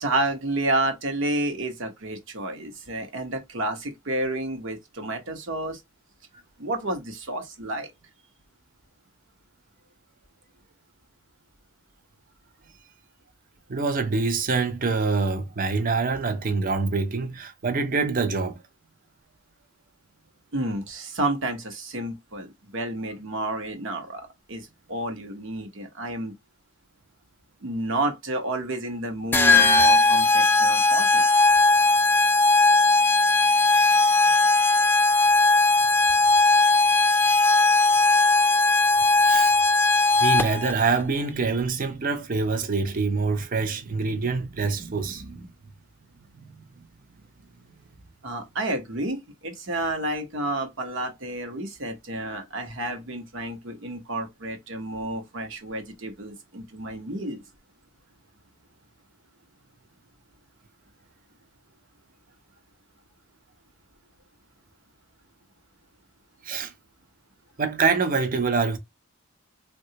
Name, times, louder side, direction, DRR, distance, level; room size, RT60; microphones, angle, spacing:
voice 1, 0.0-5.8 6.6-7.9 20.5-26.3 27.6-31.4 48.2-57.4, right 2 dB, 60° right, 0.9 m, -30 dB
voice 2, 13.7-18.6 39.2-39.5 40.2-45.5 46.3-46.5 46.8-46.9 66.4-66.7 67.6-68.8, right 4 dB, 40° right, 0.5 m, -25 dB
sound 1, 29.3-40.7, left 3 dB, 10° left, 0.3 m, -18 dB
3.6 x 2.3 x 2.7 m
head